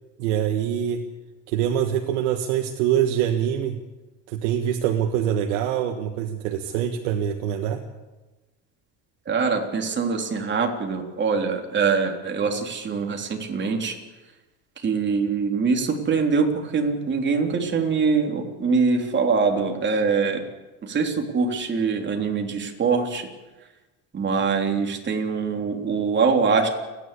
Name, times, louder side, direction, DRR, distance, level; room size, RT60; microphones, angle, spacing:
voice 1, 0.2-1.0 1.5-3.8 4.3-7.8, right 10 dB, 90° right, 3 dB, 1.6 m, -24 dB
voice 2, 9.3-14.0 14.8-20.4 20.8-23.3 24.1-26.7, right 5 dB, 30° right, 2 dB, 3.6 m, -23 dB
30.0 x 11.0 x 8.4 m, 1.1 s
supercardioid pair, 120°, 36 cm